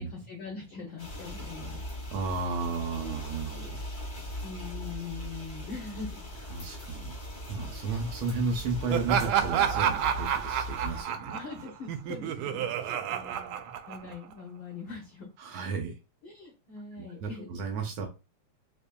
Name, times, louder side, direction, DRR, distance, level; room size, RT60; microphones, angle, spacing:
voice 1, 0.0-1.8 3.0-3.2 4.4-6.3 11.3-15.3 16.2-17.5, left 4 dB, 85° left, 1 dB, 1.1 m, -42 dB
sound 1, 1.0-11.0, left 1 dB, 65° left, 0.6 m, -40 dB
voice 2, 2.1-3.8 6.5-7.1 7.5-11.3 15.4-15.9 17.0-18.1, right 4 dB, 70° right, 2 dB, 1.8 m, -33 dB
Laughter, 8.9-14.3, right 9 dB, 90° right, 2.0 m, -29 dB
5.0 x 2.7 x 2.2 m, 0.28 s
omnidirectional pair, 3.4 m